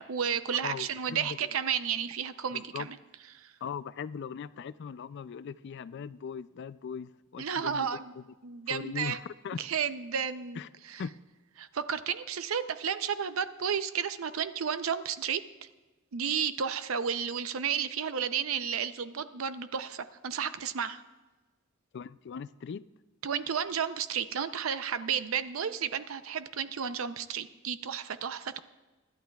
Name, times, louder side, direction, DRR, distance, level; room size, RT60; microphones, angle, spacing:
voice 1, 0.0-3.0 3.3-3.5 7.4-8.1 8.4-9.2 9.6-10.6 10.9-11.0 11.6-15.4 16.1-21.0 23.2-28.6, right 7 dB, 80° right, 0.6 m, -32 dB
voice 2, 0.6-1.5 2.5-2.9 3.6-7.9 8.2-8.3 8.7-9.6 10.6-10.7 11.0-11.2 21.9-22.8, left 6 dB, 55° left, 0.4 m, -39 dB
24.5 x 11.5 x 2.3 m
head